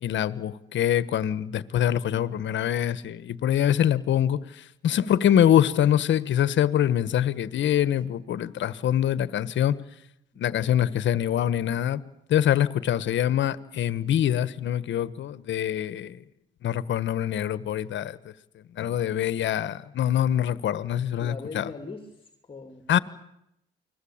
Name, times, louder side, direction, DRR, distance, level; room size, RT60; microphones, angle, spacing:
voice 1, 0.0-9.8 10.4-12.0 12.3-16.2 16.6-18.2 18.8-21.7 22.9-23.0, left 10 dB, 70° left, 1.3 m, -24 dB
voice 2, 10.3-10.8 21.2-23.0, left 4 dB, 25° left, 3.1 m, -41 dB
29.0 x 21.0 x 8.8 m
cardioid pair, 90°, 20 cm